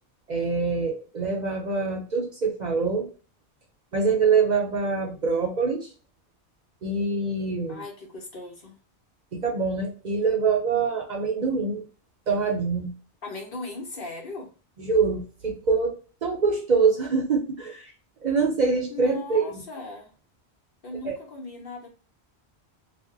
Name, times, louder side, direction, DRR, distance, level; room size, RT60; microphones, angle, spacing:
voice 1, 0.3-3.1 3.9-5.9 6.8-7.8 9.3-11.8 12.3-12.9 14.8-17.9 18.2-19.6 21.0-21.2, right 4 dB, 50° right, 0 dB, 0.6 m, -25 dB
voice 2, 7.7-8.7 13.2-14.5 18.9-20.1 20.8-21.9, left 2 dB, 60° left, 0 dB, 1.1 m, -38 dB
2.5 x 2.1 x 3.7 m, 0.36 s
omnidirectional pair, 1.1 m